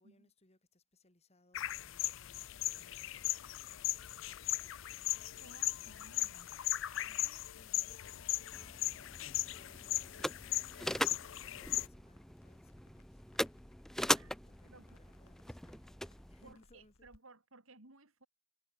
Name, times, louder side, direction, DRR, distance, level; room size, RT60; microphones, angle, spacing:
voice 1, 0.0-4.9 5.7-6.2 7.0-8.8 9.4-13.2 14.1-16.0 16.3-17.1, left 1 dB, 30° left, 3.1 m, -68 dB
sound 1, 1.5-11.9, left 15 dB, 65° left, 0.5 m, -38 dB
voice 2, 5.4-6.7 14.0-15.0 16.4-18.3, right 3 dB, 75° right, 3.5 m, -60 dB
sound 2, 8.5-16.5, left 1 dB, ahead, 0.4 m, -40 dB
Crackle, 9.4-17.2, left 2 dB, 90° left, 3.3 m, -68 dB
head